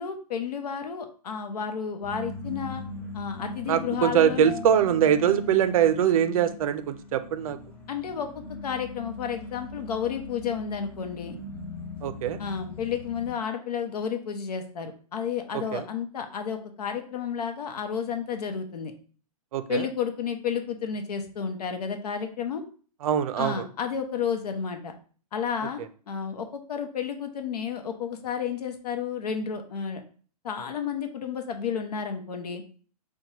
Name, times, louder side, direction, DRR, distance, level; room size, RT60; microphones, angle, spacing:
voice 1, 0.0-2.8 3.1-4.5 7.9-11.4 12.4-18.9 19.7-22.6 23.4-24.9 25.3-25.8 26.1-30.0 30.4-32.6, left 7 dB, 85° left, 6 dB, 0.7 m, -31 dB
sound 1, 2.0-13.3, left 2 dB, 40° left, 1.3 m, -39 dB
voice 2, 3.7-7.6 12.0-12.4 15.5-15.8 19.5-19.9 23.0-23.6, right 9 dB, 65° right, 12 dB, 0.4 m, -23 dB
4.4 x 2.2 x 2.8 m, 0.42 s
hypercardioid pair, 150°, 19 cm